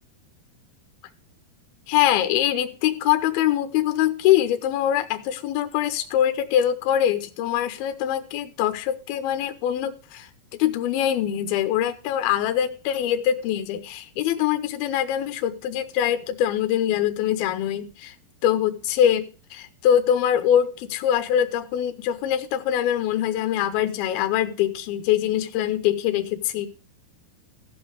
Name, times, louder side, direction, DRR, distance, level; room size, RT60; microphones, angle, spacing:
voice 1, 1.9-18.1 18.4-26.7, left 10 dB, 80° left, 8 dB, 2.6 m, -23 dB
14.5 x 5.4 x 6.2 m, 0.37 s
omnidirectional pair, 4.4 m